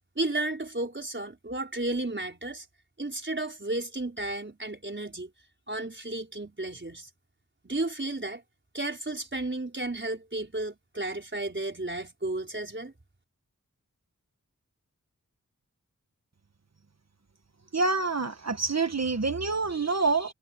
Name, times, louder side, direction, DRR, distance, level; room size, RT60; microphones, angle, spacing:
voice 1, 0.2-2.7 3.0-5.3 5.7-7.1 7.6-8.4 8.7-12.9, right 2 dB, 35° right, 4.7 m, -33 dB
voice 2, 17.7-20.3, right 3 dB, 50° right, 1.5 m, -27 dB
wide cardioid pair, 75°, 33 cm